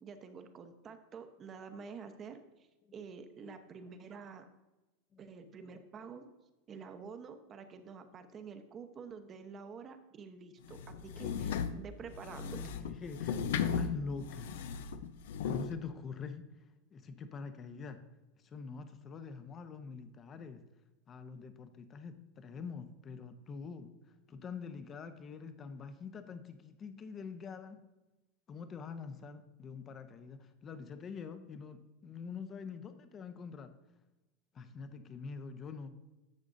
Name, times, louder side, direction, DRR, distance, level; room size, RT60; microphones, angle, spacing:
voice 1, 0.0-4.4 5.2-6.2 6.7-12.9, right 5 dB, 30° right, 7 dB, 0.9 m, -49 dB
sound 1, 10.7-15.7, left 7 dB, 75° left, 0.6 m, -36 dB
voice 2, 13.0-14.6 15.4-16.5 16.9-18.0 18.4-20.6 21.1-23.9 24.3-27.8 28.5-33.7 34.5-35.9, left 5 dB, 30° left, 9 dB, 0.8 m, -45 dB
11.5 x 7.2 x 2.7 m, 1.1 s
hypercardioid pair, 110°, 0 cm